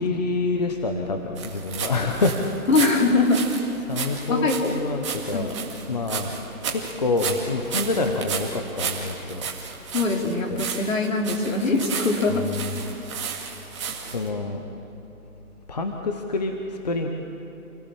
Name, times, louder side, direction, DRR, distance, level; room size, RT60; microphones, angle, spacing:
voice 1, 0.0-2.4 3.8-5.6 5.9-6.4 6.7-9.5 10.5-10.7 12.3-12.9 14.0-14.6 15.7-17.1, left 3 dB, 30° left, 4 dB, 1.0 m, -27 dB
sound 1, 1.4-14.3, right 6 dB, 20° right, 2.1 m, -33 dB
voice 2, 2.7-3.5 4.3-4.8 5.3-5.5 9.9-12.5, left 3 dB, 60° left, 2 dB, 3.6 m, -22 dB
27.5 x 17.0 x 7.3 m, 3.0 s
hypercardioid pair, 165°, 44 cm